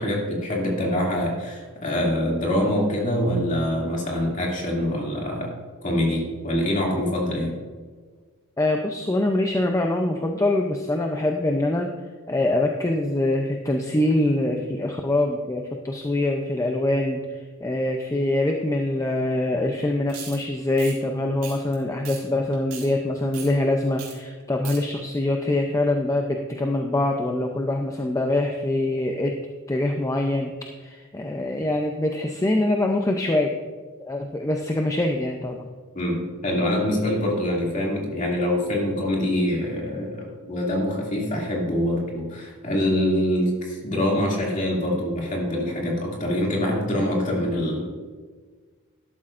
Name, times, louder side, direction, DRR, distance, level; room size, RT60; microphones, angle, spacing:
voice 1, 0.0-5.5 5.8-7.6 35.9-47.9, left 1 dB, 35° left, -3 dB, 2.5 m, -25 dB
voice 2, 8.6-11.9 12.3-29.3 29.7-30.5 30.8-33.6 34.0-35.7, left 1 dB, 15° left, 2 dB, 0.5 m, -24 dB
sound 1, 20.1-20.4 20.7-20.9 21.4-21.7 22.0-22.2 22.5-22.9 23.3-23.5 24.0-24.1 24.4-24.8, right 7 dB, 65° right, 3.0 m, -37 dB
12.5 x 11.5 x 2.5 m, 1.5 s
head